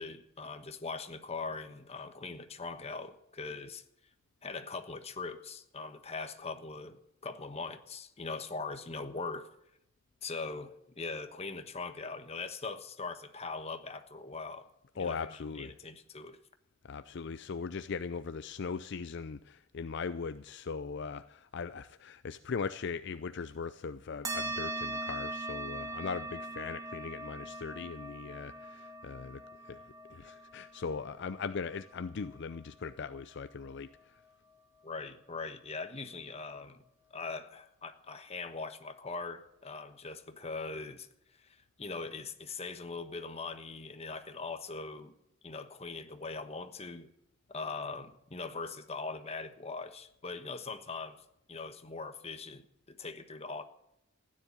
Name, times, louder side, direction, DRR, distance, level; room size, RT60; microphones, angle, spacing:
voice 1, 0.0-3.8 4.4-9.5 10.2-14.7 15.0-16.4 34.8-36.8 37.1-41.1 41.4-45.1 45.4-47.1 47.5-51.2 51.5-53.6, left 4 dB, 30° left, 1.2 m, -41 dB
voice 2, 15.0-15.7 16.9-29.8 30.1-33.9, left 5 dB, 60° left, 0.5 m, -39 dB
sound 1, 24.2-33.2, right 2 dB, 15° right, 2.2 m, -41 dB
16.0 x 10.0 x 8.5 m
head